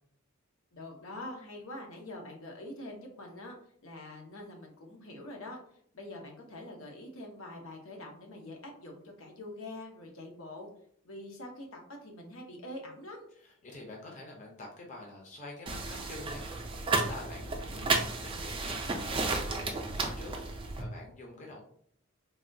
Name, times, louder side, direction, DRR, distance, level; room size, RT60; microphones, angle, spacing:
voice 1, 0.7-3.6 3.8-5.6 5.9-10.7 11.0-13.2, left 1 dB, 80° left, 1 dB, 0.7 m, -45 dB
voice 2, 13.4-21.6, left 2 dB, 35° left, -1 dB, 0.5 m, -47 dB
sound 1, 15.7-20.8, right 3 dB, 25° right, 0.3 m, -33 dB
3.4 x 2.2 x 2.6 m, 0.64 s
head